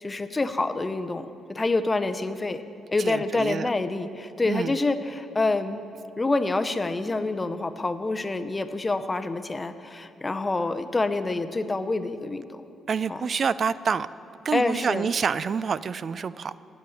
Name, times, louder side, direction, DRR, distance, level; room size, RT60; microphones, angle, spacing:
voice 1, 0.0-2.6 2.9-5.8 6.2-12.4 13.1-13.2 14.5-15.1, left 3 dB, 20° left, 9 dB, 0.6 m, -27 dB
voice 2, 3.0-3.7 4.4-4.8 12.9-14.1 14.4-16.6, right 6 dB, 45° right, 17 dB, 0.3 m, -27 dB
8.4 x 8.4 x 9.2 m, 2.8 s
cardioid pair, 90°, 0 cm